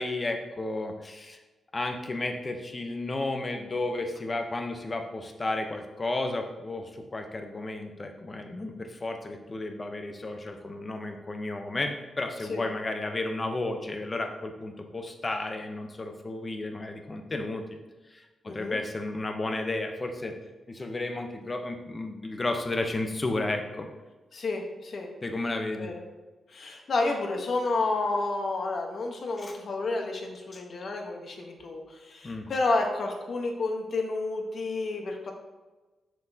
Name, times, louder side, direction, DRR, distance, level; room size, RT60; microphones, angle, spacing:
voice 1, 0.0-1.4 1.7-17.6 18.1-20.3 20.7-23.9 25.2-25.9 29.4-29.6 30.5-30.6 32.2-32.5, left 2 dB, 25° left, 5 dB, 0.8 m, -33 dB
voice 2, 18.4-18.8 24.3-25.1 25.8-26.0 26.5-35.3, left 3 dB, 55° left, 2 dB, 1.1 m, -30 dB
7.0 x 6.0 x 2.8 m, 1.2 s
cardioid pair, 115°, 0 cm